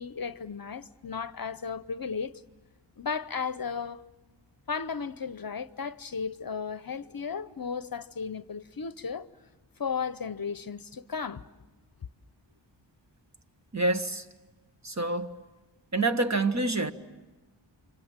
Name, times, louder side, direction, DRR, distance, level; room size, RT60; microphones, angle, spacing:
voice 1, 0.0-2.3 3.0-4.0 4.7-9.3 9.8-11.4, left 6 dB, 45° left, 0.8 m, -34 dB
voice 2, 13.7-14.2 14.8-15.4 15.9-16.9, right 2 dB, 35° right, 1.5 m, -27 dB
29.0 x 25.5 x 7.5 m
wide cardioid pair, 90°, 47 cm